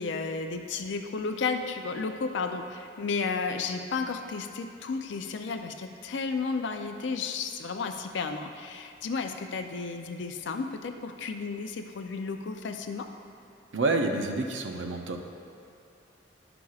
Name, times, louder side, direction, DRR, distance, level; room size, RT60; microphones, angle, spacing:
voice 1, 0.0-13.1, left 4 dB, 70° left, 6 dB, 0.4 m, -33 dB
voice 2, 13.7-15.3, right 2 dB, 80° right, 3 dB, 0.6 m, -28 dB
10.5 x 5.9 x 2.4 m, 2.5 s
head